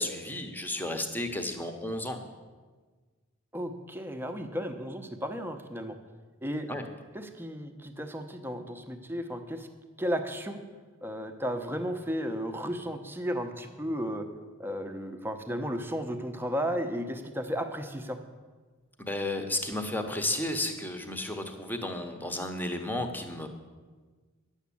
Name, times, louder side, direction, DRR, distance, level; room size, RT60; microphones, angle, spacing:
voice 1, 0.0-2.2 6.7-6.8 19.0-23.5, left 1 dB, 10° left, 6 dB, 1.0 m, -33 dB
voice 2, 3.5-5.9 6.4-6.7 7.1-9.7 10.0-10.6 11.0-14.2 14.6-18.2, equal, 10° right, 6 dB, 0.8 m, -34 dB
10.5 x 7.2 x 8.5 m, 1.4 s
head